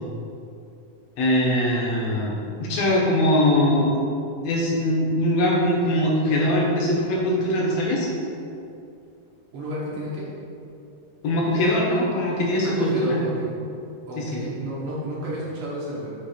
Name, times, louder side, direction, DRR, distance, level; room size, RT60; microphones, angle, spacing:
voice 1, 1.2-4.0 4.4-8.1 11.2-13.2 14.2-14.3, left 1 dB, 65° left, -3 dB, 2.0 m, -22 dB
voice 2, 9.5-10.3 12.6-13.5 14.1-16.1, equal, 60° right, -6 dB, 1.8 m, -32 dB
6.8 x 3.3 x 5.0 m, 2.6 s
omnidirectional pair, 3.4 m